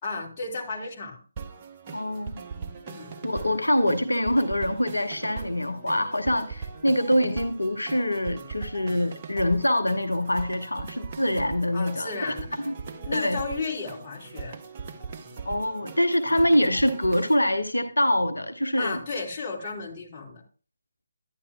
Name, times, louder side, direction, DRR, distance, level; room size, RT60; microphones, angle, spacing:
voice 1, 0.0-1.2 2.8-3.1 11.7-12.6 13.1-14.6 18.8-20.4, left 4 dB, 30° left, -3 dB, 2.1 m, -33 dB
sound 1, 1.4-17.4, right 5 dB, 30° right, 0.8 m, -40 dB
voice 2, 1.9-2.4 3.2-12.3 12.7-12.8 13.1-13.4 15.4-19.0, left 1 dB, 80° left, 8 dB, 0.7 m, -24 dB
10.5 x 9.8 x 2.3 m, 0.35 s
figure-of-eight pair, 150°, 0 cm